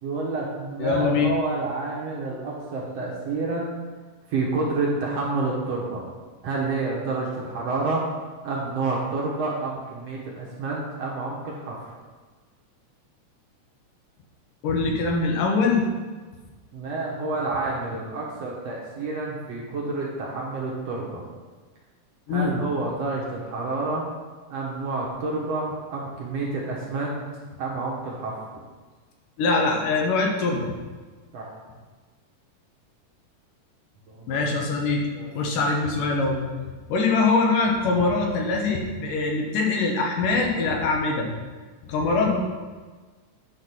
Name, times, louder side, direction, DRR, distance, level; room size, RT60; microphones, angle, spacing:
voice 1, 0.0-3.7 4.3-6.0 6.4-8.0 8.4-11.9 16.7-21.2 22.3-24.0 24.5-27.2 27.6-28.4 31.3-31.5 34.1-34.4 35.1-35.6, right 3 dB, 60° right, -3 dB, 2.0 m, -29 dB
voice 2, 0.8-1.3 14.6-15.9 22.3-22.5 29.4-30.7 34.3-35.0 35.4-36.4 36.9-41.3 41.9-42.4, left 3 dB, 75° left, 0 dB, 2.7 m, -23 dB
9.7 x 4.2 x 5.9 m, 1.4 s
omnidirectional pair, 3.8 m